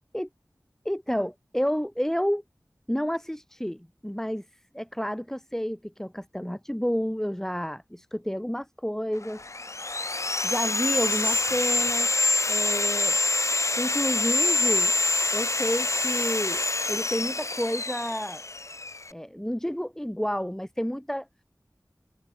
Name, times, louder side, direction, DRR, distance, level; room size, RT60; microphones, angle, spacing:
voice 1, 0.8-2.4 2.9-4.4 4.7-9.4 10.4-12.1 12.5-13.2 13.8-14.9 15.3-18.4 19.1-21.3, equal, 5° left, 6.6 m, -30 dB
Sawing, 9.2-19.1, left 3 dB, 50° left, 0.6 m, -26 dB
wide cardioid pair, 55°, 7 cm